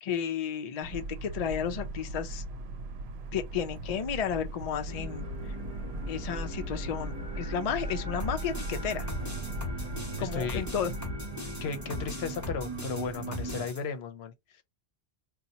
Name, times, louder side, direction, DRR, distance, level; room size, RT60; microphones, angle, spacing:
voice 1, 0.0-2.4 3.3-5.6 6.1-9.1 10.2-10.9, left 8 dB, 50° left, 0.5 m, -33 dB
sound 1, 0.8-11.1, right 2 dB, 75° right, 0.8 m, -39 dB
sound 2, 4.9-13.7, right 1 dB, 40° right, 0.8 m, -39 dB
sound 3, 8.2-13.8, left 2 dB, 20° left, 0.8 m, -40 dB
voice 2, 10.2-10.6 11.6-14.6, left 5 dB, 75° left, 0.9 m, -35 dB
2.8 x 2.3 x 3.9 m
omnidirectional pair, 1.1 m